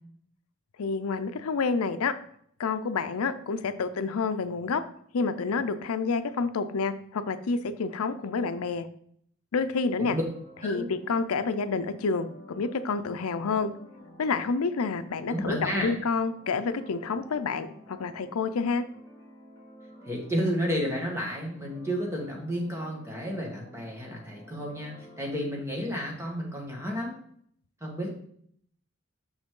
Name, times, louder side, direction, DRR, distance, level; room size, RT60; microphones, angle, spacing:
voice 1, 0.8-2.1 2.6-4.8 5.1-8.9 9.5-10.2 10.6-13.7 14.2-18.8, left 4 dB, 85° left, 11 dB, 0.5 m, -28 dB
sound 1, 10.0-25.3, equal, 15° left, 2.4 m, -51 dB
voice 2, 15.3-15.9 20.0-27.2 27.8-28.1, equal, 10° right, -1 dB, 1.5 m, -31 dB
6.2 x 6.2 x 3.7 m, 0.65 s
head